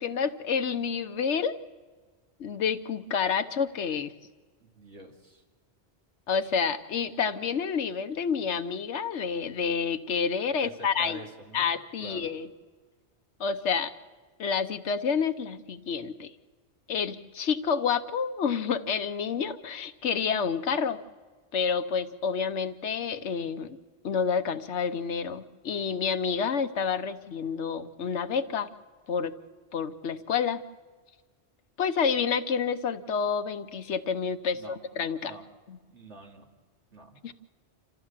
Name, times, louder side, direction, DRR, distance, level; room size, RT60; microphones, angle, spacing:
voice 1, 0.0-1.6 2.4-4.1 6.3-11.2 11.5-12.5 13.4-13.9 14.4-16.3 16.9-21.0 21.5-23.8 24.0-28.7 29.1-29.3 29.7-30.6 31.8-35.3 35.7-35.8 37.2-37.3, left 6 dB, 90° left, 9 dB, 1.2 m, -29 dB
voice 2, 4.6-5.4 10.6-11.7 12.0-12.3 34.5-34.8 35.2-35.4 35.9-36.5 36.9-37.2, right 2 dB, 90° right, 0 dB, 2.8 m, -45 dB
27.5 x 14.5 x 7.4 m, 1.4 s
omnidirectional pair, 1.1 m